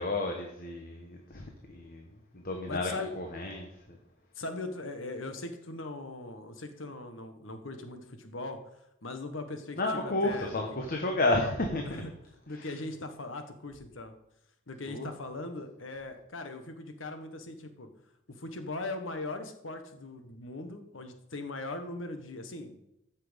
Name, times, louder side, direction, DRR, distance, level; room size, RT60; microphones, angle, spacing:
voice 1, 0.0-2.0 2.3-2.9 3.2-3.7 9.8-12.0 14.9-15.1, left 2 dB, 45° left, 2 dB, 1.2 m, -31 dB
voice 2, 2.7-3.1 4.3-8.6 9.0-10.6 11.8-12.1 12.5-14.1 14.7-18.0 18.3-22.9, left 2 dB, 75° left, 7 dB, 1.3 m, -40 dB
14.5 x 6.0 x 5.1 m, 0.83 s
head